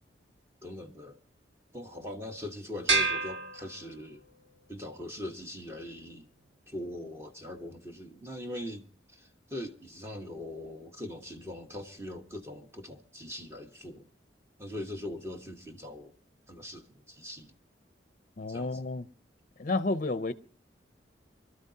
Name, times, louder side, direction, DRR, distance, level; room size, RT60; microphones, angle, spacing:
voice 1, 0.6-1.2 1.7-4.3 4.7-6.3 6.7-8.9 9.1-14.1 14.6-16.1 16.5-17.5 18.5-18.8, left 1 dB, 15° right, 1.2 m, -41 dB
sound 1, 2.9-4.4, right 3 dB, 70° right, 1.5 m, -29 dB
voice 2, 18.4-19.1 19.6-20.3, left 2 dB, 45° left, 0.6 m, -31 dB
24.0 x 13.0 x 2.8 m
head